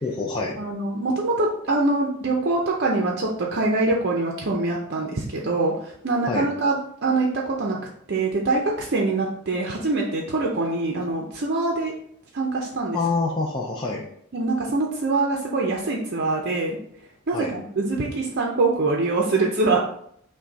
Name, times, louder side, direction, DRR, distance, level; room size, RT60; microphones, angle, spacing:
voice 1, 0.0-0.6 6.3-6.5 12.9-14.1 17.3-17.5, left 3 dB, 20° left, -3 dB, 0.5 m, -26 dB
voice 2, 0.6-7.8 8.1-12.0 12.3-13.0 14.3-16.8 17.3-19.8, right 3 dB, 50° right, -1 dB, 0.6 m, -24 dB
5.9 x 2.3 x 3.9 m, 0.67 s
head